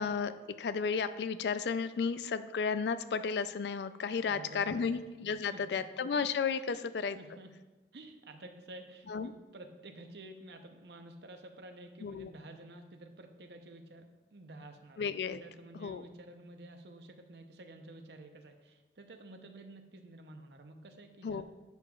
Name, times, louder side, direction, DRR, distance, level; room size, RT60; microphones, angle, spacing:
voice 1, 0.0-7.2 9.1-9.3 12.0-12.3 15.0-15.4 15.7-16.0 21.2-21.4, left 5 dB, 75° left, 13 dB, 0.4 m, -33 dB
voice 2, 4.2-5.0 5.5-5.8 6.7-6.9 7.2-7.5 7.9-15.1 15.4-21.4, right 2 dB, 75° right, 6 dB, 0.7 m, -51 dB
10.5 x 6.8 x 2.4 m, 1.2 s
head